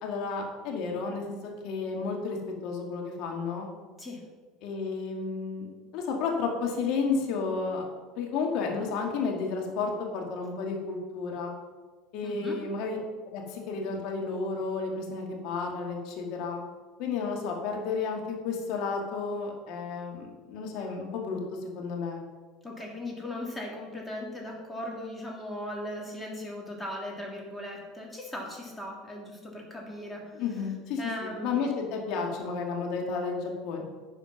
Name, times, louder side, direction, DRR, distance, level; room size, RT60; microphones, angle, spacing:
voice 1, 0.0-1.4 1.6-2.4 2.6-3.7 4.6-5.7 5.9-7.8 8.2-11.5 12.1-16.6 17.0-22.2 30.3-33.8, left 4 dB, 65° left, 1 dB, 2.2 m, -32 dB
voice 2, 12.2-12.6 22.6-30.4 31.0-31.6, left 1 dB, 10° left, -2 dB, 3.1 m, -38 dB
10.5 x 5.0 x 5.8 m, 1.4 s
hypercardioid pair, 90°, 0 cm